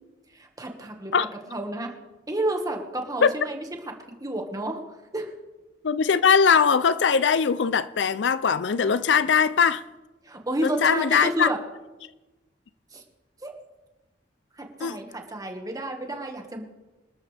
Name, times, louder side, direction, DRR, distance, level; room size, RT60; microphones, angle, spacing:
voice 1, 0.3-1.1 1.5-1.9 2.3-3.9 4.2-4.8 5.1-5.3 10.2-11.6 12.9-13.0 13.4-13.5 14.6-16.6, right 1 dB, 20° right, 1.7 m, -30 dB
voice 2, 5.8-9.8 10.6-11.5 14.8-15.0, left 6 dB, 70° left, 0.5 m, -21 dB
25.5 x 13.0 x 3.4 m
head